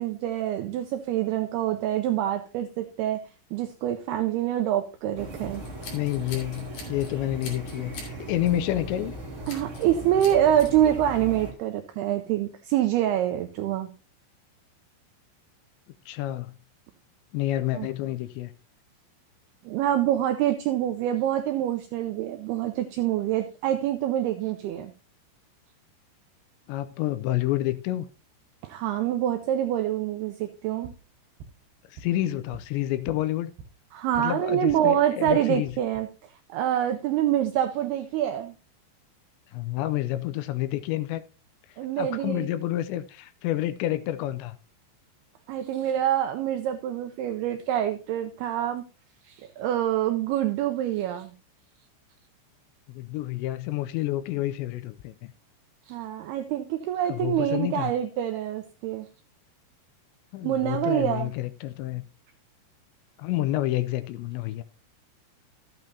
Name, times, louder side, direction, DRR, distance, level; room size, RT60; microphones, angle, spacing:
voice 1, 0.0-3.2 3.5-5.6 9.5-13.9 17.7-17.9 19.7-24.9 28.6-30.9 33.9-36.1 36.5-38.5 41.8-42.5 45.5-48.8 49.2-51.3 55.9-59.1 60.4-61.3, right 11 dB, 90° right, 2.3 m, -26 dB
sound 1, 5.1-11.5, right 1 dB, 35° right, 1.2 m, -38 dB
Scissors, 5.5-7.1 7.4-8.1 8.5-8.7 9.4-9.9 10.2-10.7, left 4 dB, 55° left, 4.4 m, -42 dB
voice 2, 5.9-9.2 16.1-16.6 17.3-18.5 26.7-28.1 31.9-33.5 34.2-35.8 39.5-41.2 42.0-44.6 52.9-55.3 57.1-57.9 60.3-62.0 63.2-64.6, left 14 dB, 80° left, 2.7 m, -29 dB
sound 2, 30.8-34.9 35.2-36.0, right 5 dB, 70° right, 3.0 m, -48 dB
13.5 x 9.0 x 2.7 m
omnidirectional pair, 5.3 m